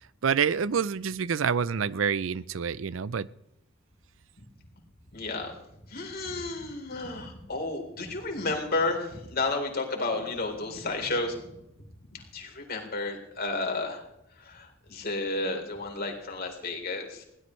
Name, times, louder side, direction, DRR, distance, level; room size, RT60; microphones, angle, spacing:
voice 1, 0.2-3.3, right 6 dB, 80° right, 0.5 m, -27 dB
voice 2, 5.1-5.6 5.9-11.4 12.1-14.0 14.4-17.2, left 2 dB, 50° left, 3.8 m, -32 dB
21.0 x 17.0 x 3.2 m
head